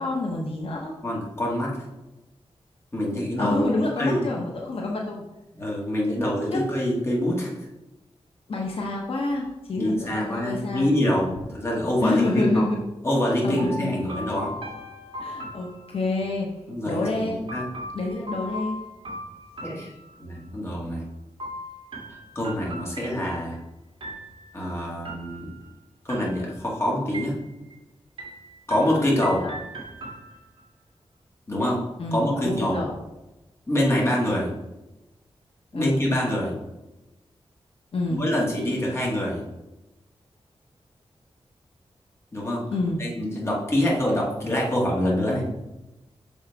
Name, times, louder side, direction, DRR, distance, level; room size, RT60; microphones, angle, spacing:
voice 1, 0.0-0.9 3.4-5.2 6.5-6.7 8.5-10.9 12.0-12.8 13.4-14.2 15.2-16.5 16.9-17.5 17.9-18.8 29.4-29.5 32.0-32.9 35.7-36.0 37.9-38.2 42.7-43.0, left 2 dB, 65° left, -1 dB, 0.9 m, -28 dB
voice 2, 1.0-1.8 2.9-3.7 4.0-4.2 5.6-7.5 9.7-12.7 13.0-14.5 16.7-17.6 19.6-19.9 20.2-21.0 22.1-23.6 24.5-25.5 26.1-27.4 28.7-29.4 31.5-31.8 32.1-32.8 33.7-34.5 35.7-36.5 38.1-39.4 42.3-42.6 43.0-45.4, left 1 dB, 25° left, -4 dB, 1.8 m, -25 dB
sound 1, 13.6-16.3 17.5-20.5 21.4-23.6 24.0-24.6 25.0-25.7 26.1-26.7 27.1-27.8 28.2-30.7, equal, 55° right, 2.2 m, -39 dB
6.2 x 5.5 x 4.7 m, 1.0 s
wide cardioid pair, 165°, 11 cm